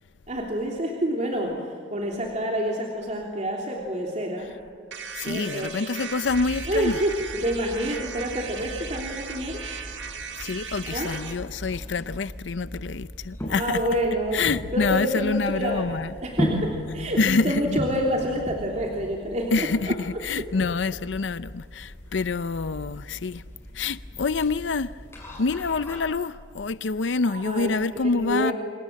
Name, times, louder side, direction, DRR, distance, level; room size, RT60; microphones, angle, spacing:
voice 1, 0.3-4.5 5.2-5.8 6.7-9.6 10.9-11.1 13.5-20.0 27.3-28.5, equal, 40° right, 3.3 m, -28 dB
sound 1, 4.9-11.4, right 6 dB, 85° right, 2.2 m, -37 dB
voice 2, 5.1-6.9 10.4-13.8 14.3-16.1 17.2-17.8 19.5-23.4 23.7-24.9 25.4-28.5, left 4 dB, 85° left, 0.6 m, -26 dB
sound 2, 6.2-26.0, equal, 15° left, 7.5 m, -37 dB
29.5 x 26.0 x 7.5 m
head